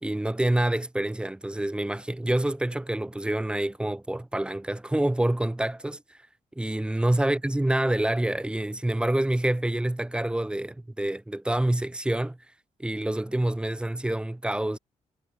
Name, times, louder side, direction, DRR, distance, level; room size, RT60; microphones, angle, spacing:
voice 1, 0.0-6.2 6.6-12.4 12.8-14.8, right 1 dB, 5° right, 0.5 m, -27 dB
cardioid pair, 85°, 13 cm